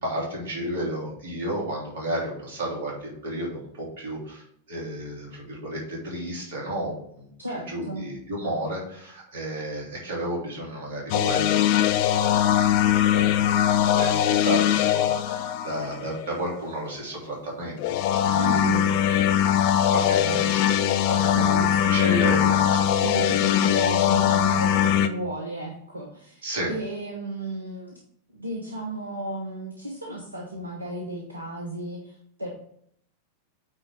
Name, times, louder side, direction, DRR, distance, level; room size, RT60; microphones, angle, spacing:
voice 1, 0.0-12.6 12.9-13.4 13.8-18.0 18.2-18.7 19.9-20.7 21.0-22.9 26.4-26.7, right 1 dB, 55° right, -3 dB, 3.4 m, -32 dB
voice 2, 7.4-8.1 18.3-18.9 20.3-20.5 21.4-22.1 22.4-22.6 23.0-28.0 28.3-32.5, right 1 dB, 80° right, -1 dB, 1.1 m, -34 dB
sound 1, 11.1-16.2 17.8-25.1, left 10 dB, 45° left, 0.5 m, -21 dB
8.9 x 3.9 x 4.6 m, 0.68 s
figure-of-eight pair, 90°, 0 cm